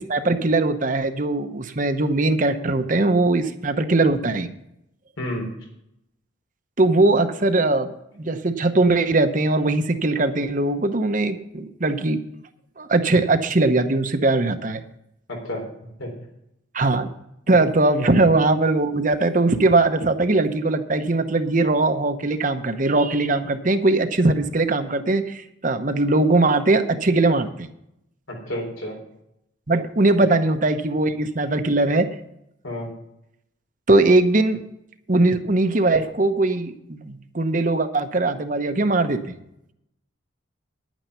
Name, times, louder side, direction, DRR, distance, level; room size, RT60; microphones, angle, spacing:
voice 1, 0.0-4.5 6.8-7.9 8.2-12.2 12.8-14.8 16.7-17.1 17.5-27.7 29.7-32.1 33.9-34.6 35.1-39.4, right 2 dB, 40° right, 8 dB, 0.8 m, -20 dB
voice 2, 5.2-5.5 15.3-15.6 16.0-16.1 18.0-18.1 28.3-29.0 30.2-30.3 32.6-32.9, left 1 dB, 85° left, 1 dB, 4.0 m, -30 dB
11.0 x 9.1 x 5.6 m, 0.79 s
head